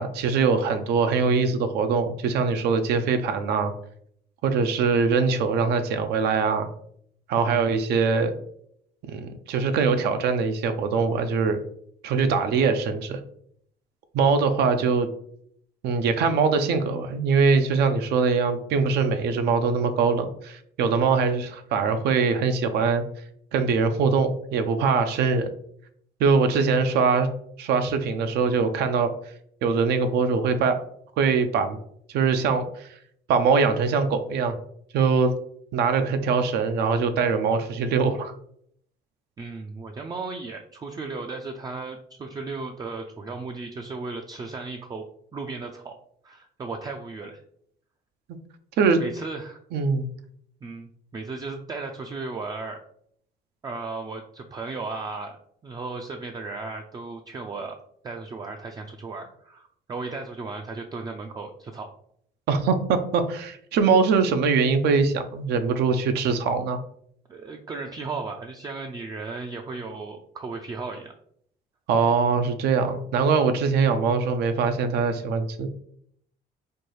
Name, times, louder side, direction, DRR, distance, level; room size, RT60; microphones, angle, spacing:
voice 1, 0.0-3.7 4.4-6.7 7.3-8.3 9.0-11.6 12.0-13.2 14.1-15.1 15.8-23.0 23.5-25.5 26.2-27.3 27.6-29.1 29.6-30.8 31.2-31.8 32.1-32.9 33.3-34.6 34.9-35.3 35.7-38.3 48.8-49.0 49.7-50.1 62.5-66.8 71.9-75.7, right 5 dB, 75° right, 8 dB, 0.5 m, -22 dB
voice 2, 7.5-7.8 39.4-45.1 45.3-45.9 46.2-47.4 49.0-49.6 50.6-52.8 53.6-55.4 55.6-57.8 58.0-61.9 67.3-71.1, right 3 dB, 25° right, 3 dB, 0.3 m, -35 dB
4.4 x 2.3 x 3.1 m, 0.68 s
cardioid pair, 110°, 17 cm